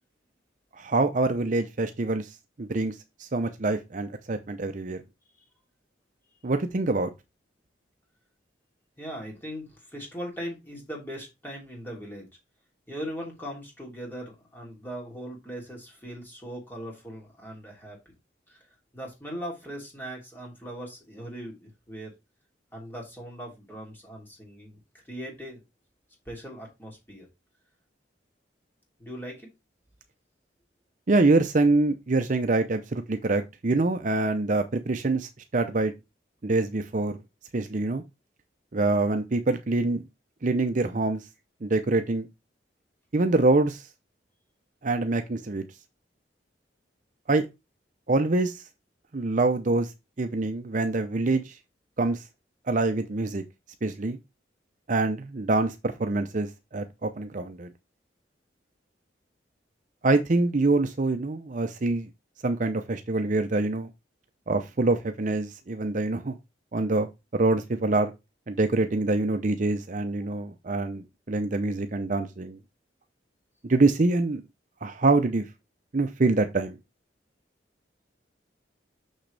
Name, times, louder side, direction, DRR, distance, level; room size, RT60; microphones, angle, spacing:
voice 1, 0.8-2.3 2.6-5.0 6.4-7.1 31.1-35.9 36.4-37.2 37.5-38.0 38.7-40.0 40.4-41.2 41.6-42.3 43.1-43.8 44.8-45.6 47.3-47.4 48.1-48.6 49.1-49.9 50.2-51.6 52.0-52.2 52.7-53.4 53.8-54.2 54.9-57.7 60.0-62.1 62.4-63.9 64.5-66.4 66.7-67.1 67.3-68.1 68.5-72.6 73.6-74.4 74.8-75.4 75.9-76.8, right 2 dB, 45° right, 0.6 m, -25 dB
voice 2, 9.0-12.3 12.9-18.0 18.5-18.6 18.9-22.1 22.7-24.8 25.0-25.6 26.2-27.3 29.0-29.5, equal, 10° left, 3.0 m, -39 dB
6.4 x 6.2 x 3.3 m
head